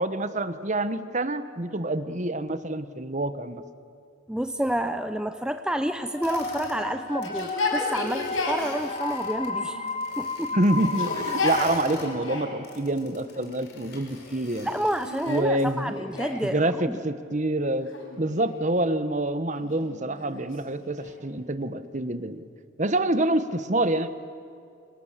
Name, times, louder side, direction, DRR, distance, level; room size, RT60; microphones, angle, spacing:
voice 1, 0.0-3.6 10.5-14.7 15.3-15.9 16.4-17.9 18.2-22.5 22.8-24.1, right 1 dB, 35° right, 12 dB, 1.2 m, -27 dB
voice 2, 4.3-9.9 10.2-10.5 14.6-17.0, right 1 dB, 5° right, 8 dB, 0.7 m, -29 dB
sound 1, 6.1-13.0, left 4 dB, 30° left, 0.9 m, -33 dB
sound 2, 6.2-6.8 7.1-9.5 9.9-12.1 12.6-15.4, left 4 dB, 55° left, 5.7 m, -46 dB
Yell, 6.3-8.7 9.6-10.3 10.7-12.6 13.3-14.0 14.7-16.5 17.9-18.7 19.5-21.3, left 2 dB, 75° left, 5.6 m, -33 dB
30.0 x 25.5 x 7.5 m, 2.6 s
head